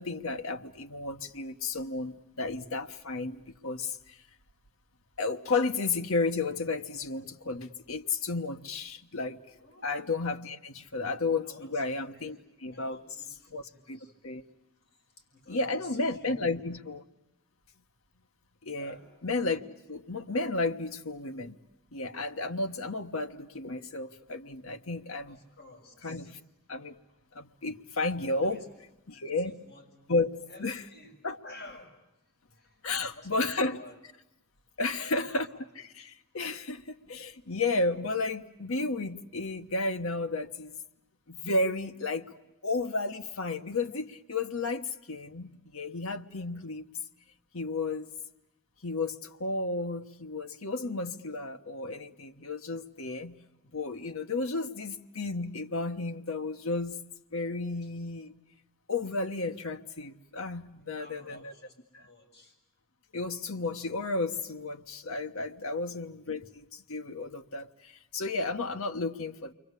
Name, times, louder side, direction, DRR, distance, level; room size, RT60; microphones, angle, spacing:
voice 1, 0.0-4.0 5.2-9.4 9.8-13.0 13.5-14.4 15.5-17.0 18.6-18.9 19.2-19.6 19.9-21.6 21.9-25.4 26.0-26.4 26.7-27.0 27.3-28.6 29.1-29.5 30.1-30.3 30.6-30.8 31.2-31.4 32.8-33.8 34.8-35.5 36.1-40.8 41.3-42.3 42.6-46.8 47.5-48.1 48.8-53.4 53.7-57.0 57.3-58.3 58.9-61.5 61.9-62.0 63.1-69.5, left 3 dB, 70° left, 6 dB, 1.2 m, -32 dB
voice 2, 9.6-9.9 11.4-11.8 12.1-14.2 14.8-16.6 18.7-19.1 25.2-26.3 28.3-28.7 29.1-30.2 30.5-31.9 32.5-32.8 33.1-34.0 35.0-35.8 57.8-57.9 60.8-62.6, left 1 dB, 55° left, 0 dB, 6.7 m, -52 dB
29.0 x 23.5 x 8.3 m, 0.92 s
head